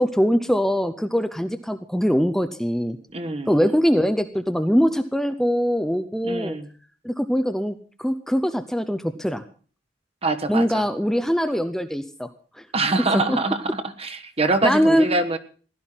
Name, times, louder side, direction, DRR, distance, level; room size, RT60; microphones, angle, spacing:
voice 1, 0.0-3.0 3.5-6.6 7.0-9.4 10.5-12.3 12.6-12.7 13.1-13.4 14.6-15.1, equal, ahead, 8 dB, 0.7 m, -22 dB
voice 2, 3.1-3.6 6.2-6.7 10.2-10.8 12.7-15.4, right 2 dB, 35° right, 8 dB, 1.3 m, -24 dB
16.5 x 11.5 x 5.8 m, 0.41 s
head